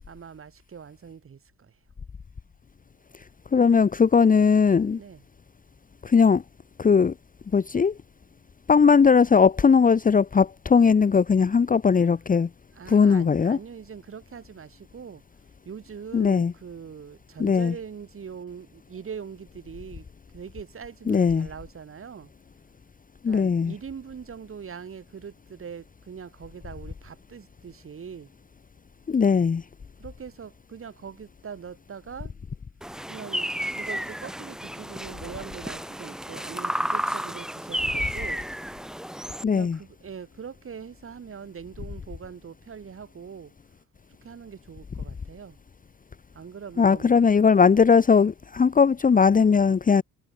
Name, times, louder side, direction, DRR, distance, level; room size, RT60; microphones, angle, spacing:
voice 1, 0.1-1.7 5.0-5.2 12.7-15.2 15.7-20.1 20.3-22.3 23.3-28.3 30.0-32.3 33.1-38.4 39.5-43.5 44.2-45.6 46.3-47.2 47.6-47.8, right 7 dB, 45° right, 5.3 m, -42 dB
voice 2, 3.5-5.0 6.0-6.4 6.8-7.1 7.5-7.9 8.7-12.5 12.9-13.6 16.1-16.5 17.4-17.7 21.1-21.5 23.2-23.7 29.1-29.6 39.4-39.8 46.8-50.0, left 5 dB, 25° left, 0.9 m, -19 dB
sound 1, 32.8-39.4, equal, ahead, 0.8 m, -32 dB
cardioid pair, 90°, 30 cm